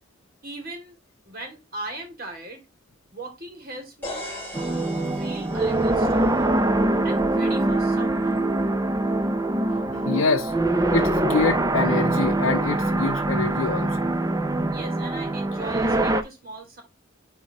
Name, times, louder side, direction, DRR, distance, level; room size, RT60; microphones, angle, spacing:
voice 1, 0.4-1.0 1.3-2.7 3.1-4.3 5.0-6.6 7.0-8.4 14.7-16.8, right 2 dB, 45° right, 2.6 m, -39 dB
sound 1, 4.0-7.9, left 1 dB, 10° left, 3.7 m, -40 dB
sound 2, 4.5-16.2, right 2 dB, 15° right, 0.6 m, -23 dB
voice 2, 9.7-10.5 10.9-14.1, left 4 dB, 75° left, 0.6 m, -26 dB
9.3 x 3.7 x 3.0 m
head